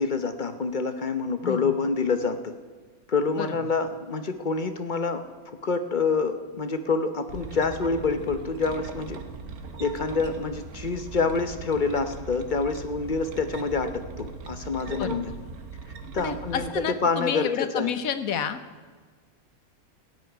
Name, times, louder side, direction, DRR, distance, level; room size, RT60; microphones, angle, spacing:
voice 1, 0.0-2.5 3.1-5.2 5.6-9.2 9.8-15.3 16.1-18.0, left 4 dB, 40° left, 9 dB, 0.9 m, -27 dB
voice 2, 1.4-1.8 3.4-3.5 15.0-15.2 16.2-18.6, left 8 dB, 75° left, 11 dB, 1.3 m, -30 dB
sound 1, 7.3-16.8, right 4 dB, 85° right, 1.6 m, -39 dB
16.0 x 6.4 x 9.5 m, 1.5 s
omnidirectional pair, 1.5 m